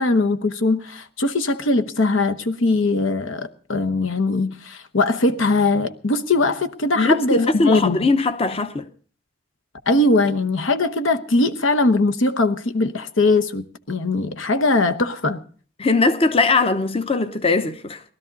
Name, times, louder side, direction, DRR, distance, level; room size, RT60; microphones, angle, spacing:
voice 1, 0.0-8.1 9.9-15.4, left 2 dB, 85° left, 1.0 m, -20 dB
voice 2, 7.0-8.9 15.8-18.0, left 3 dB, 30° left, 0.8 m, -20 dB
19.5 x 13.0 x 4.0 m
head